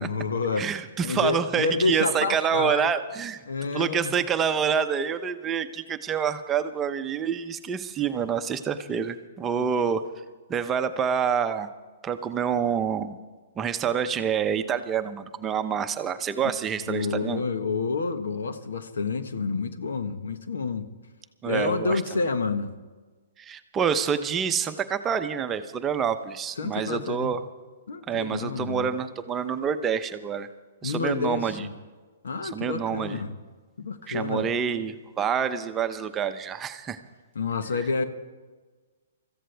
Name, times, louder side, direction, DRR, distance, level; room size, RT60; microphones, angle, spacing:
voice 1, 0.0-0.7 1.0-2.9 3.5-4.1 9.5-9.8 16.9-20.9 21.4-22.7 26.6-27.3 27.9-28.9 30.8-31.7 32.2-33.4 33.8-34.5 37.3-38.0, left 4 dB, 80° left, 1.3 m, -29 dB
voice 2, 0.6-3.4 3.7-10.1 10.5-11.7 12.0-13.2 13.6-17.4 21.4-22.0 23.4-27.4 28.1-30.5 30.8-31.7 32.4-33.2 34.1-37.0, right 7 dB, 20° right, 0.8 m, -27 dB
24.0 x 14.5 x 3.4 m
hypercardioid pair, 140°, 0 cm